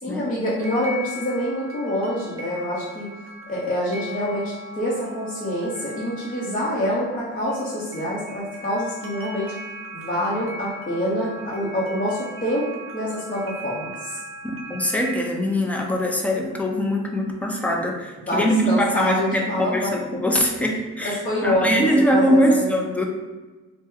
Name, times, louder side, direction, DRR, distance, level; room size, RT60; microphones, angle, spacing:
voice 1, 0.0-3.1 3.5-9.5 9.9-12.6 12.9-14.2 18.3-19.9 21.0-22.7, equal, 25° left, -8 dB, 0.8 m, -26 dB
sound 1, 0.6-15.2, equal, 45° right, 0.5 m, -39 dB
voice 2, 14.4-23.0, equal, 5° left, 1 dB, 0.4 m, -22 dB
2.9 x 2.1 x 3.5 m, 1.3 s
cardioid pair, 90°, 30 cm